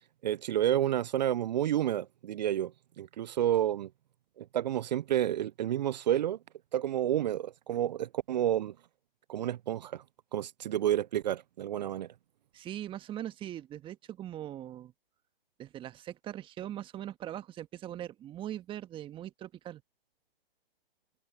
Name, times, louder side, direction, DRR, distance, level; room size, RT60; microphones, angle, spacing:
voice 1, 0.2-3.9 4.4-6.4 6.7-8.7 9.3-10.0 10.3-12.1, right 11 dB, 45° right, 0.4 m, -30 dB
voice 2, 12.5-14.9 15.6-19.8, right 12 dB, 15° right, 1.5 m, -41 dB
hypercardioid pair, 130°, 30 cm